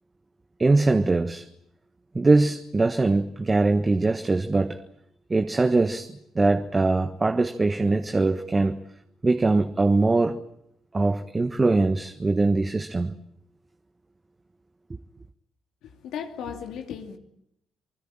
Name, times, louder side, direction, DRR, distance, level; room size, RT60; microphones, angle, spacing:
voice 1, 0.6-1.5 2.1-4.8 5.3-8.8 9.2-10.4 10.9-13.2, right 3 dB, 30° right, 1.4 m, -22 dB
voice 2, 15.8-17.2, left 7 dB, 80° left, 2.7 m, -36 dB
28.0 x 20.0 x 8.9 m
supercardioid pair, 60°, 0 cm